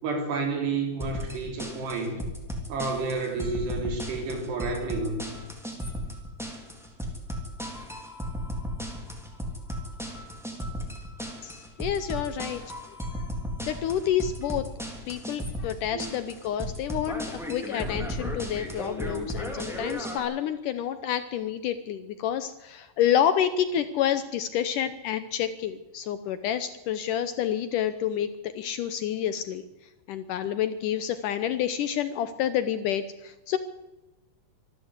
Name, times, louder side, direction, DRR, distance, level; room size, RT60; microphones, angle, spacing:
voice 1, 0.0-2.2 2.7-5.2 15.9-16.0, right 3 dB, 85° right, 4 dB, 5.6 m, -30 dB
sound 1, 1.0-20.2, equal, ahead, 2.4 m, -35 dB
voice 2, 11.4-12.7 13.1-13.3 13.6-14.7 15.1-29.6 30.1-33.6, left 10 dB, 80° left, 11 dB, 1.9 m, -29 dB
25.0 x 13.0 x 8.2 m, 1.0 s
omnidirectional pair, 4.7 m